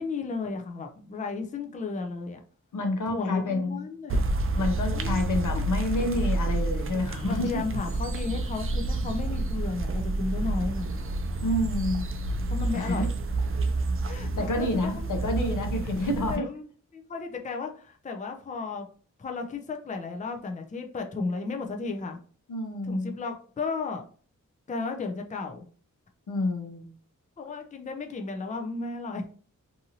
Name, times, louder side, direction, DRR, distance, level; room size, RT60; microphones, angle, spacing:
voice 1, 0.0-2.4 3.1-4.3 4.9-5.2 5.5-5.7 7.2-10.9 12.5-13.1 14.1-15.1 16.2-16.7 16.9-18.9 19.2-22.2 22.8-24.0 24.7-25.6 27.4-29.3, left 4 dB, 25° left, 4 dB, 0.4 m, -34 dB
voice 2, 2.7-3.9 4.6-7.6 11.4-12.1 12.7-13.0 14.4-16.5 22.5-23.1 26.3-26.9, left 1 dB, 75° left, 4 dB, 0.7 m, -28 dB
sound 1, 4.1-16.4, right 2 dB, 45° right, 0.4 m, -29 dB
2.7 x 2.5 x 2.8 m, 0.43 s
wide cardioid pair, 70°, 31 cm